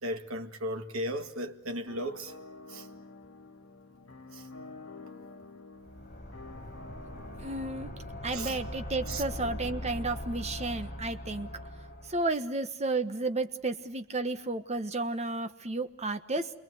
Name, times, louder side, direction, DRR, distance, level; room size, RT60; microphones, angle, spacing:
voice 1, 0.0-2.4 2.7-2.9 4.3-4.5 8.3-8.6 9.1-9.2, equal, 80° right, 2.0 m, -36 dB
sound 1, 1.9-10.8, left 3 dB, 80° left, 1.8 m, -49 dB
sound 2, 5.8-12.3, left 1 dB, 40° left, 7.6 m, -41 dB
voice 2, 7.4-7.9 8.2-11.5 12.1-16.5, right 2 dB, 30° right, 1.4 m, -32 dB
29.5 x 21.5 x 7.9 m
head